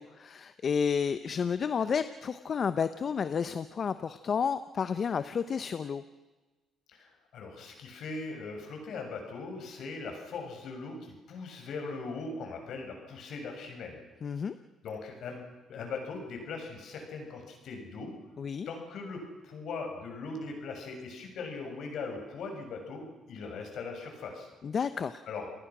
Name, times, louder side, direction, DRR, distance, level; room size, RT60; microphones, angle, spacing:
voice 1, 0.0-6.0 14.2-14.5 18.4-18.7 24.6-25.2, left 6 dB, 50° left, 12 dB, 0.9 m, -31 dB
voice 2, 6.9-14.0 14.8-15.4 15.7-18.1 18.6-24.5 25.3-25.5, left 4 dB, 65° left, 3 dB, 6.9 m, -40 dB
29.5 x 19.5 x 6.2 m, 1.2 s
cardioid pair, 85°, 0 cm